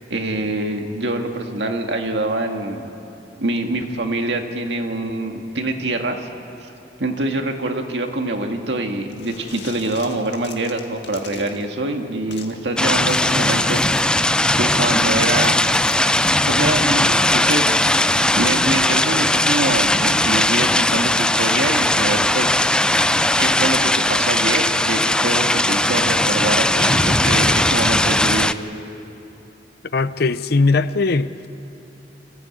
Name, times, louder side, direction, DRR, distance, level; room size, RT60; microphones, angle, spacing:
voice 1, 0.1-2.9 3.4-6.2 7.0-14.2 14.5-15.6 16.5-18.0 18.4-22.8 23.4-28.5, right 2 dB, 85° right, 4 dB, 1.8 m, -25 dB
sound 1, 9.1-11.7 12.3-14.6 15.2-15.3 15.4-16.3, left 6 dB, 80° left, 2.0 m, -39 dB
sound 2, 12.8-28.5, left 1 dB, 5° left, 0.4 m, -18 dB
voice 2, 29.9-31.3, left 3 dB, 60° left, 14 dB, 0.6 m, -19 dB
25.5 x 15.0 x 8.4 m, 2.9 s
head